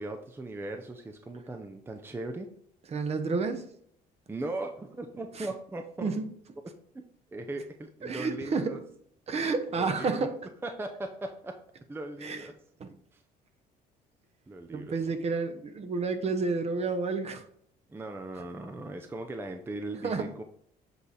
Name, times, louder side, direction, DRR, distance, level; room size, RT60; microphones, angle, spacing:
voice 1, 0.0-2.5 4.3-6.1 7.3-8.8 9.7-10.3 10.6-11.6 11.9-12.5 13.1-13.2 14.5-14.9 17.9-20.4, right 2 dB, 15° right, 0.5 m, -38 dB
voice 2, 2.9-3.7 5.3-5.5 6.0-6.3 8.0-8.8 9.3-10.4 12.2-12.5 12.8-12.9 14.7-17.4 20.0-20.3, right 4 dB, 40° right, 0.8 m, -30 dB
7.8 x 3.3 x 4.1 m
cardioid pair, 110°, 17 cm